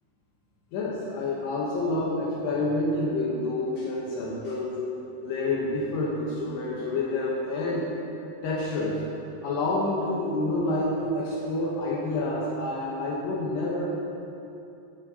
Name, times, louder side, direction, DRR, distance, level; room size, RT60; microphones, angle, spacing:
voice 1, 0.7-4.8 5.2-7.9 8.4-9.0 9.4-13.8, left 2 dB, 70° left, -5 dB, 3.0 m, -28 dB
14.5 x 9.8 x 2.9 m, 2.7 s
omnidirectional pair, 5.2 m